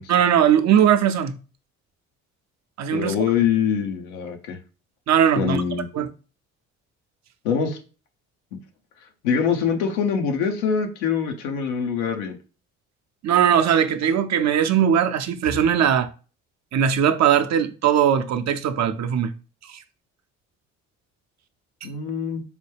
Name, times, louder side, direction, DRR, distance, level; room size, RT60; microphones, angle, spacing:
voice 1, 0.1-1.4 2.8-3.2 5.1-5.6 5.9-6.1 13.2-16.1 16.7-19.3, right 9 dB, 50° right, 0.6 m, -19 dB
voice 2, 2.9-4.6 5.3-5.9 7.4-7.8 9.2-12.4 21.8-22.4, left 7 dB, 85° left, 0.8 m, -24 dB
4.8 x 2.2 x 3.3 m
hypercardioid pair, 55°, 35 cm